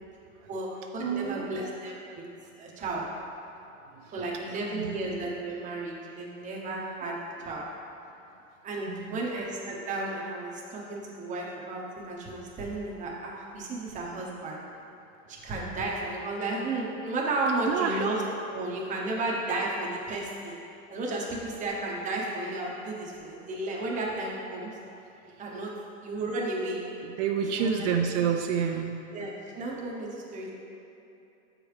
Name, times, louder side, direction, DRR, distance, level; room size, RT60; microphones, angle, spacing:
voice 1, 0.5-2.0 2.6-3.0 4.1-7.7 8.6-14.6 15.3-20.6 20.9-24.7 25.4-25.7 26.0-26.8 27.5-27.9 29.1-30.6, right 2 dB, 20° right, -3 dB, 0.8 m, -33 dB
voice 2, 1.0-1.6 3.9-4.1 4.5-5.0 8.9-9.2 17.7-18.0 25.2-25.7 27.0-29.0, right 7 dB, 65° right, 4 dB, 0.5 m, -29 dB
6.9 x 4.8 x 3.3 m, 2.8 s
supercardioid pair, 145°, 39 cm